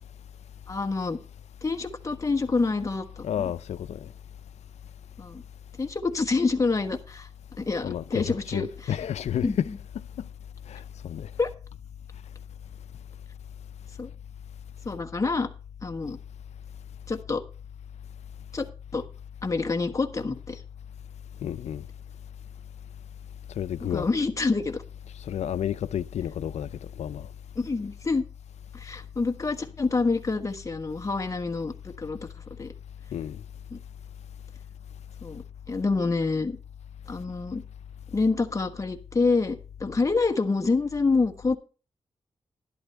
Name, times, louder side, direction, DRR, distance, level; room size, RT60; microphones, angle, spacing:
voice 1, 0.7-1.2 1.6-3.5 5.2-5.4 5.8-7.3 7.6-9.1 9.4-9.8 11.4-11.5 14.0-14.1 14.8-15.5 15.8-16.2 17.1-17.4 18.5-18.7 18.9-19.0 19.4-20.6 23.8-24.8 27.5-28.2 28.7-32.3 32.6-32.7 33.7-33.8 35.2-36.6 37.1-37.6 38.1-41.6, left 3 dB, 30° left, 1.3 m, -27 dB
voice 2, 3.2-4.1 7.8-9.7 10.2-10.3 10.7-11.3 21.4-21.8 23.6-24.1 25.3-26.7 27.0-27.3 33.1-33.4, left 9 dB, 90° left, 0.5 m, -31 dB
11.5 x 11.5 x 3.4 m
cardioid pair, 90°, 11 cm